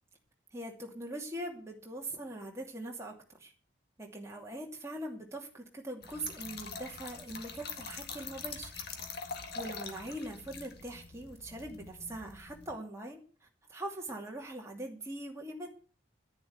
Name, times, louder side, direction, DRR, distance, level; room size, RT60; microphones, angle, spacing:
voice 1, 0.5-3.5 4.0-8.8 9.5-15.7, right 1 dB, 15° right, 0 dB, 2.6 m, -42 dB
Trickle dribble / Fill (with liquid), 6.0-12.8, left 5 dB, 50° left, 1.9 m, -44 dB
10.5 x 10.5 x 8.1 m, 0.40 s
head